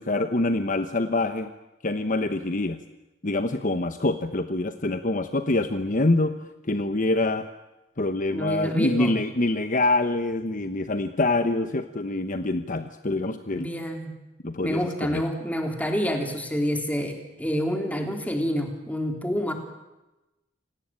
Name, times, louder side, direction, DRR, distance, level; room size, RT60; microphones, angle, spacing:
voice 1, 0.0-1.5 1.8-2.8 3.2-6.3 6.6-7.5 8.0-13.7 14.4-15.2, left 2 dB, 40° left, 9 dB, 1.1 m, -25 dB
voice 2, 8.3-9.1 13.5-14.1 14.6-19.5, equal, 10° left, 4 dB, 3.7 m, -28 dB
28.5 x 18.5 x 8.9 m, 1.0 s
head